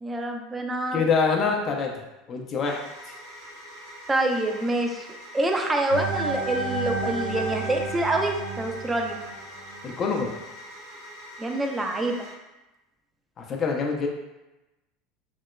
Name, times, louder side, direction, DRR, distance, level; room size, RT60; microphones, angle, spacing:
voice 1, 0.0-1.0 4.1-5.1 5.3-9.2 11.4-12.2, right 2 dB, 15° right, 3 dB, 0.4 m, -26 dB
voice 2, 0.9-1.9 2.3-2.8 9.8-10.3 13.4-14.1, left 5 dB, 35° left, 1 dB, 0.5 m, -25 dB
sound 1, 2.6-12.3, equal, 70° right, 1.4 m, -44 dB
sound 2, 5.9-9.9, right 3 dB, 90° left, 0.4 m, -31 dB
3.1 x 2.8 x 2.2 m, 1.0 s
figure-of-eight pair, 75°, 0 cm